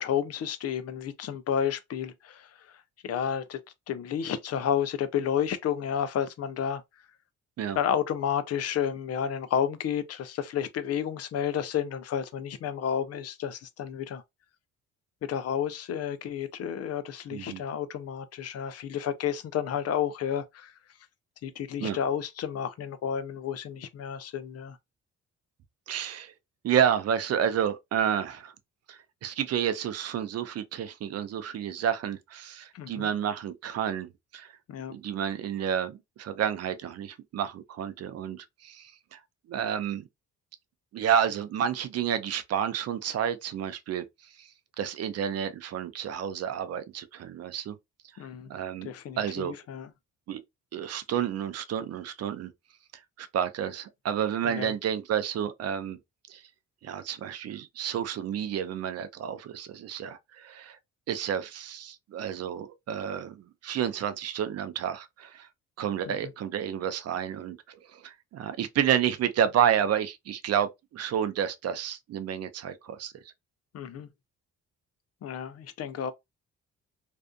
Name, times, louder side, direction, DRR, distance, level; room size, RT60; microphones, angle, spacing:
voice 1, 0.0-2.4 3.0-3.6 3.9-6.8 7.8-14.2 15.3-20.7 21.4-24.8 32.7-33.1 34.7-35.0 48.2-48.5 48.8-49.9 54.4-54.7 66.1-66.2 73.7-74.1 75.2-76.1, left 8 dB, 55° left, 0.5 m, -31 dB
voice 2, 17.3-17.6 21.8-22.0 25.9-26.3 26.6-28.5 28.9-34.5 34.9-39.2 39.5-40.1 40.9-44.0 44.4-44.5 44.8-47.8 48.5-49.5 50.3-50.4 50.7-52.5 53.2-56.0 56.3-56.4 56.8-60.8 61.1-65.5 65.8-73.1, right 9 dB, 55° right, 0.5 m, -30 dB
2.6 x 2.4 x 2.2 m
cardioid pair, 90°, 30 cm